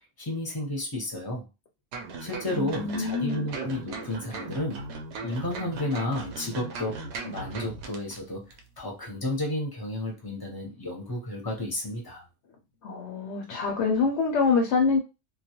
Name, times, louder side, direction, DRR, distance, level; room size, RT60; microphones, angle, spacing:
voice 1, 0.2-1.4 2.2-4.8 5.2-7.0 7.2-8.4 8.8-12.2, left 1 dB, 25° left, 0 dB, 0.7 m, -32 dB
sound 1, 1.9-8.2 8.5-8.6, right 4 dB, 75° right, 0.9 m, -38 dB
voice 2, 2.5-3.5 12.8-15.0, left 4 dB, 75° left, 1 dB, 0.9 m, -25 dB
2.3 x 2.2 x 2.8 m, 0.27 s
omnidirectional pair, 1.2 m